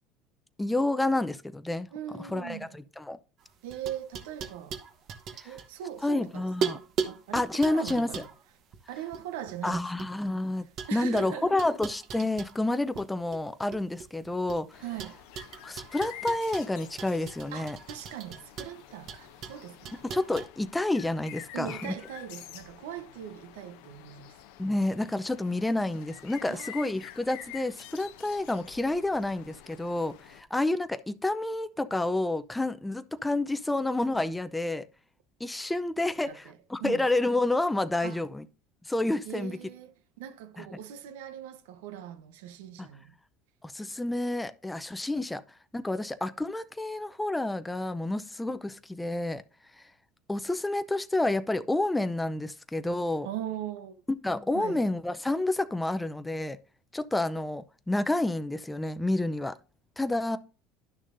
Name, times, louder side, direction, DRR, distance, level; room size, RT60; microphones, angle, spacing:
voice 1, 0.6-1.9 2.3-3.2 5.4-5.5 6.0-6.8 7.3-8.2 9.6-14.7 15.6-17.8 20.0-21.9 24.6-34.9 35.4-38.4 38.8-39.6 40.6-40.7 42.8-42.9 43.6-45.4 45.7-49.4 50.3-53.3 54.2-56.6 56.9-59.5 60.0-60.4, left 2 dB, 10° left, 0.6 m, -29 dB
voice 2, 1.9-2.8 3.6-4.8 5.4-8.2 8.9-10.1 10.9-11.6 14.8-15.2 17.5-20.0 21.5-24.4 26.5-26.8 36.2-37.0 38.0-38.2 39.2-43.2 53.2-54.0 54.5-54.8, right 10 dB, 85° right, 0.9 m, -40 dB
sound 1, 3.4-6.2 6.6-10.3 10.8-13.1 13.3-14.6 15.0-20.5, right 6 dB, 55° right, 1.1 m, -38 dB
sound 2, 14.7-30.4, left 12 dB, 75° left, 0.6 m, -48 dB
11.0 x 6.4 x 2.6 m
supercardioid pair, 95°, 0 cm